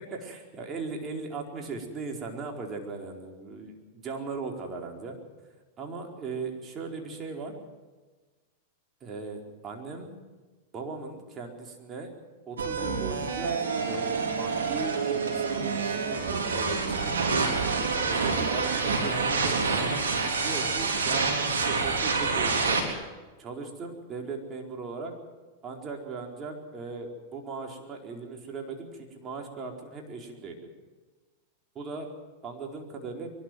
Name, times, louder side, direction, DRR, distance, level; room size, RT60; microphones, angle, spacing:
voice 1, 0.0-5.2 5.8-7.5 9.0-10.1 10.7-12.1 12.5-13.6 13.9-14.1 14.4-17.2 18.1-20.0 20.4-22.9 23.4-25.1 25.6-30.7 31.7-32.1 32.4-33.3, right 4 dB, 30° right, 1 dB, 4.5 m, -38 dB
sound 1, 12.6-22.8, right 4 dB, 90° right, 4.0 m, -27 dB
23.5 x 12.5 x 9.3 m, 1.3 s
hypercardioid pair, 110°, 0 cm